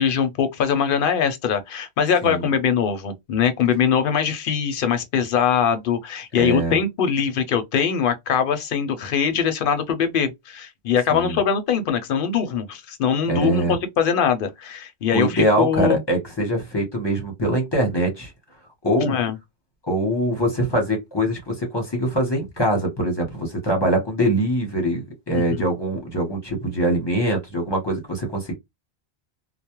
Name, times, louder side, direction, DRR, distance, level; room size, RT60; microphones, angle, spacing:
voice 1, 0.0-16.0 19.0-19.4 25.3-25.4, left 7 dB, 60° left, 0.7 m, -22 dB
voice 2, 6.3-6.8 11.1-11.4 13.3-13.7 15.1-18.3 18.8-19.2 19.9-28.5, right 1 dB, 25° left, 0.8 m, -23 dB
2.2 x 2.1 x 2.9 m
omnidirectional pair, 1.1 m